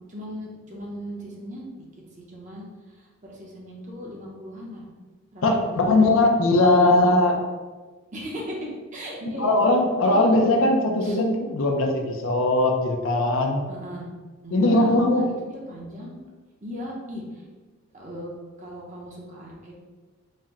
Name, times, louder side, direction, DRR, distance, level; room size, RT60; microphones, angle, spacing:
voice 1, 0.1-1.8 2.2-4.9 5.3-5.7 8.1-9.6 10.0-10.4 11.0-11.2 13.7-14.1 14.4-16.1 16.6-17.4 17.9-18.3 18.6-19.7, equal, 35° right, -3 dB, 0.8 m, -37 dB
voice 2, 5.4-7.4 9.3-13.6 14.5-15.3, left 2 dB, 70° left, 2 dB, 0.5 m, -20 dB
4.3 x 2.1 x 3.6 m, 1.3 s
head